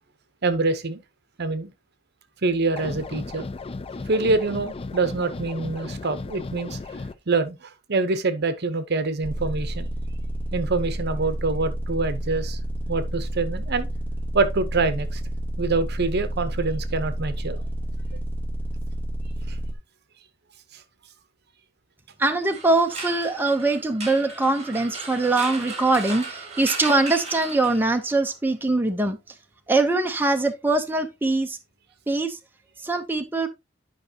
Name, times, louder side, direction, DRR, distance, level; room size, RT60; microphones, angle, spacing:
voice 1, 0.4-1.0 1.4-1.7 2.4-3.5 4.1-6.8 7.3-9.9 10.5-12.6 12.9-13.9 14.3-15.2 15.6-17.6 19.5-19.6, right 3 dB, 55° right, 0.8 m, -25 dB
sound 1, 2.8-7.1, left 3 dB, 30° left, 0.4 m, -35 dB
sound 2, 9.2-19.7, equal, 10° left, 1.8 m, -30 dB
voice 2, 22.2-29.3 29.7-31.6 32.1-32.4 32.8-33.5, right 2 dB, 10° right, 0.7 m, -22 dB
sound 3, 22.4-28.1, right 4 dB, 35° right, 2.7 m, -36 dB
10.5 x 5.3 x 2.8 m
head